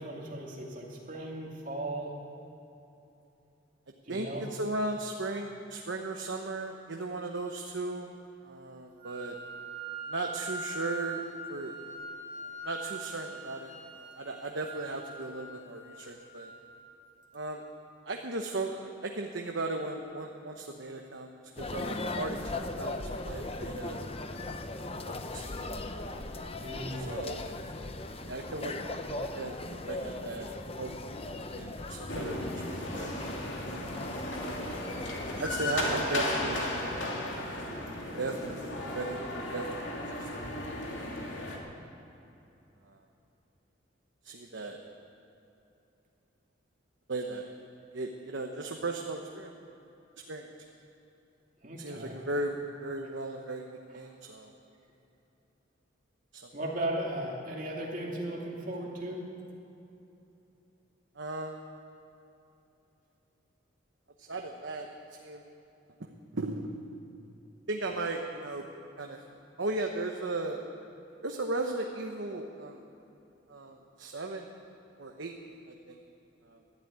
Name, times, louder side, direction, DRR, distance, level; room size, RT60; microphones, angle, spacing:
voice 1, 0.0-2.1 4.0-4.5 26.6-27.2 51.6-52.2 56.5-59.2, right 1 dB, 40° right, -2 dB, 2.6 m, -36 dB
voice 2, 4.1-8.2 8.4-9.4 10.1-11.2 11.5-11.8 12.4-16.5 17.3-17.6 18.1-23.0 23.2-24.0 24.3-24.5 24.9-25.6 27.0-27.4 28.2-29.6 29.9-33.1 35.4-36.7 37.1-37.2 38.2-39.7 40.2-40.5 41.1-41.3 42.8-43.0 44.2-44.8 47.1-47.5 47.9-49.5 50.3-50.5 51.8-53.6 53.9-54.5 56.3-56.5 61.1-61.6 64.2-64.9 65.2-65.4 66.0-66.1 66.3-66.7 67.7-68.7 69.0-69.2 69.6-70.6 71.2-72.8 73.5-74.5 75.0-76.0 76.4-76.6, right 2 dB, 70° right, 2 dB, 1.0 m, -37 dB
Wind instrument woodwind instrument, 9.0-17.0, right 2 dB, 10° right, 3.9 m, -42 dB
sound 1, 21.6-36.0, left 2 dB, 30° left, 0.7 m, -38 dB
sound 2, 32.1-41.6, left 1 dB, 70° left, 2.6 m, -35 dB
13.0 x 12.0 x 9.4 m, 2.9 s
head